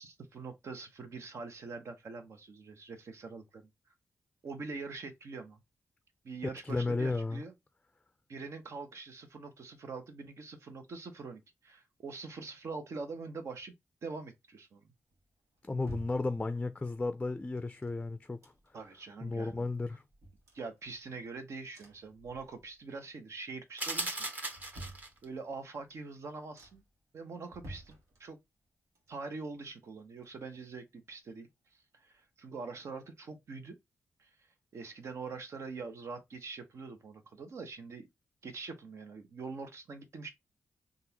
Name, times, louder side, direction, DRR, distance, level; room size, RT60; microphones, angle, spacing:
voice 1, 0.0-3.7 4.4-5.6 6.2-7.5 8.3-13.7 14.0-14.8 18.7-19.7 20.5-24.3 24.7-24.8 25.2-26.8 27.1-28.4 29.1-31.5 31.9-33.8 34.2-34.3 34.7-38.1 38.4-40.3, right 4 dB, 70° right, 1.0 m, -44 dB
voice 2, 6.6-7.4 15.7-18.5 19.2-20.0, left 3 dB, 20° left, 0.4 m, -33 dB
sound 1, 15.1-16.9 17.6-19.0 19.3-19.4 19.7-21.3 21.7-22.9 23.2-23.7 24.2-25.7 26.1-26.2 26.5-27.0 27.4-28.7 28.9-30.8 31.1-31.2, right 1 dB, 85° right, 1.4 m, -52 dB
sound 2, 23.8-25.2, right 2 dB, 35° right, 1.2 m, -37 dB
3.7 x 2.5 x 2.8 m
cardioid pair, 65°, 5 cm